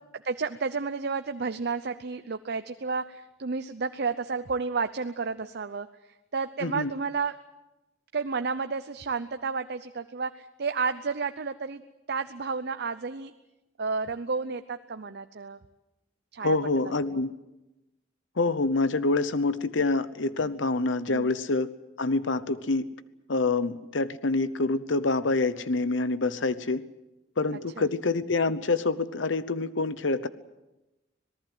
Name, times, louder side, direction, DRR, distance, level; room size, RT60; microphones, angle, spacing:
voice 1, 0.1-5.9 6.3-7.4 8.1-11.8 12.1-13.3 13.8-15.6 16.3-17.2 21.1-21.3 27.8-27.9, right 4 dB, 60° right, 10 dB, 0.7 m, -31 dB
voice 2, 16.4-17.3 18.4-21.7 22.0-22.9 23.3-26.8 27.4-30.3, left 3 dB, 75° left, 15 dB, 0.9 m, -26 dB
26.0 x 19.0 x 8.0 m, 0.99 s
head